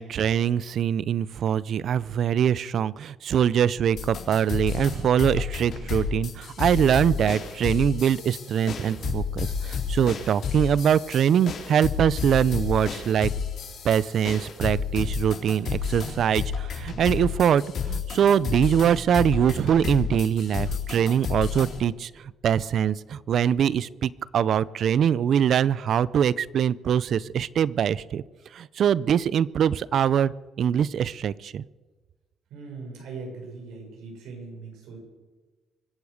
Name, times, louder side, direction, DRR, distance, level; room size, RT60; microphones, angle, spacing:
voice 1, 0.0-13.3 13.8-22.1 22.4-28.2 28.5-31.6, right 9 dB, 60° right, 20 dB, 0.5 m, -23 dB
sound 1, 3.9-21.8, left 6 dB, 60° left, 3.7 m, -31 dB
voice 2, 32.5-35.0, right 4 dB, 90° right, 0 dB, 6.6 m, -40 dB
24.5 x 8.4 x 6.6 m, 1.3 s
cardioid pair, 110°, 0 cm